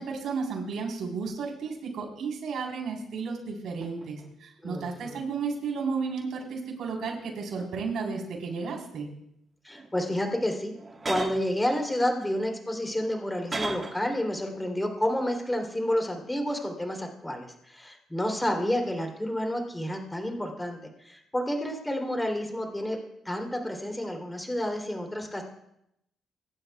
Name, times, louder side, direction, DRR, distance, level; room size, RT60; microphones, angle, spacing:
voice 1, 0.0-9.1, right 5 dB, 70° right, 1 dB, 4.1 m, -33 dB
sound 1, 3.1-3.2 3.8-4.3 5.1-6.6 7.0-8.0 8.4-9.0 9.7-10.0 10.7-11.5 12.2-14.1 14.4-14.7, right 3 dB, 30° right, 1.5 m, -40 dB
voice 2, 4.6-5.2 9.6-10.7 11.1-20.8 21.0-23.0 23.2-25.4, left 1 dB, 10° left, 3 dB, 3.2 m, -30 dB
25.5 x 12.0 x 2.4 m, 0.77 s
cardioid pair, 90°, 0 cm